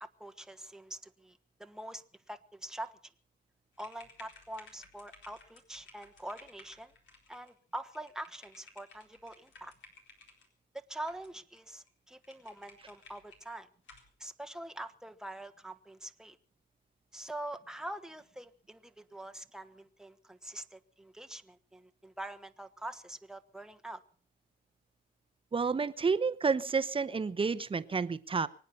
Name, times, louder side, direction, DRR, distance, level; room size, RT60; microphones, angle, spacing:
voice 1, 0.0-2.0 2.3-2.9 3.8-6.9 7.3-9.7 10.7-13.7 14.2-16.4 17.1-24.0, right 1 dB, 5° right, 9 dB, 1.1 m, -44 dB
Typing Sounds, 3.7-10.5 11.0-11.6 11.9-12.0 12.2-13.5 13.8-14.1, left 3 dB, 70° left, 4.2 m, -57 dB
voice 2, 25.5-28.5, right 5 dB, 25° right, 13 dB, 0.9 m, -30 dB
24.0 x 9.3 x 5.5 m, 0.42 s
cardioid pair, 90°, 20 cm